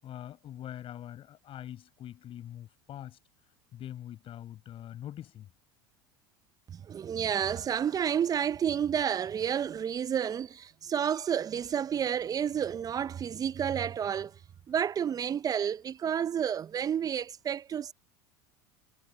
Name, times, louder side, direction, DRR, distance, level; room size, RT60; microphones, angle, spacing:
voice 1, 0.0-3.2 3.7-5.5, left 11 dB, 45° left, 7.2 m, -43 dB
voice 2, 6.7-14.4 14.7-17.9, right 8 dB, 30° right, 0.6 m, -30 dB
hypercardioid pair, 90°, 13 cm